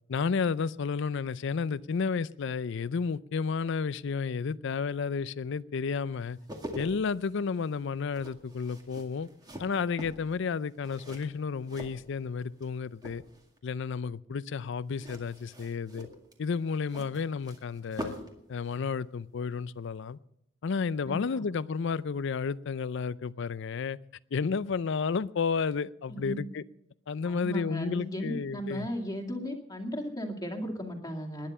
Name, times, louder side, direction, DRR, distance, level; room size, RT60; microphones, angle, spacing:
voice 1, 0.1-6.4 6.7-9.3 9.6-13.2 13.6-16.1 16.4-18.1 18.5-20.2 20.6-24.0 24.3-26.6 27.1-28.9, left 5 dB, 65° left, 18 dB, 0.4 m, -32 dB
sound 1, 6.2-12.7 13.0-13.6 14.9-18.4 18.7-18.8, equal, 20° right, 2.1 m, -44 dB
voice 2, 21.0-21.4 26.1-26.4 27.3-31.5, equal, 20° left, 3 dB, 2.3 m, -36 dB
20.0 x 10.5 x 5.5 m, 0.78 s
head